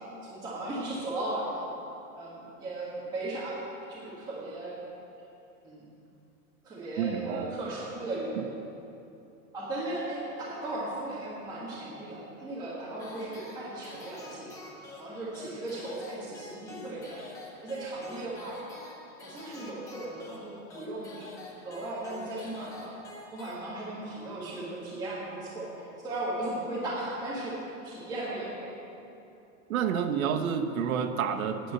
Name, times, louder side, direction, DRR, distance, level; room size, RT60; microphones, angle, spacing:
voice 1, 0.0-1.6 2.2-3.6 3.9-4.8 5.6-5.8 6.6-8.5 9.5-14.6 15.0-17.3 17.6-18.6 19.2-21.3 21.6-22.9 23.3-28.7, right 2 dB, 10° right, -9 dB, 1.6 m, -36 dB
voice 2, 7.0-7.5 8.4-8.5 29.7-31.7, right 7 dB, 75° right, 6 dB, 1.0 m, -29 dB
sound 1, 13.0-24.1, left 2 dB, 10° left, 0.5 m, -48 dB
9.8 x 8.0 x 8.0 m, 2.8 s
supercardioid pair, 170°, 42 cm